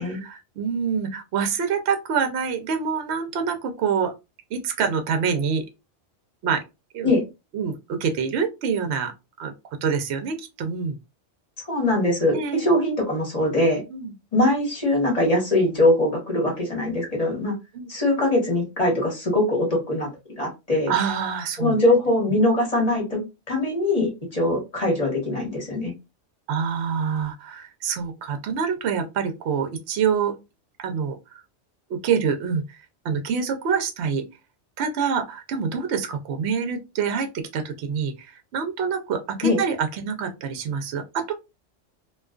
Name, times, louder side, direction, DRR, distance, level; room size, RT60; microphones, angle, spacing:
voice 1, 0.0-4.1 4.5-5.7 6.4-6.6 6.9-7.1 7.5-9.1 9.4-9.5 9.8-11.0 12.3-12.7 13.9-14.1 17.7-17.9 20.9-21.8 23.1-23.3 26.5-30.4 30.8-31.4 31.9-32.8 33.0-34.2 34.8-41.3, right 6 dB, 70° right, 0.8 m, -26 dB
voice 2, 11.7-13.8 14.3-17.5 17.9-20.1 20.4-20.9 21.6-23.2 23.5-25.9 39.4-39.6, left 1 dB, 35° left, 1.1 m, -22 dB
2.4 x 2.3 x 2.3 m
omnidirectional pair, 1.2 m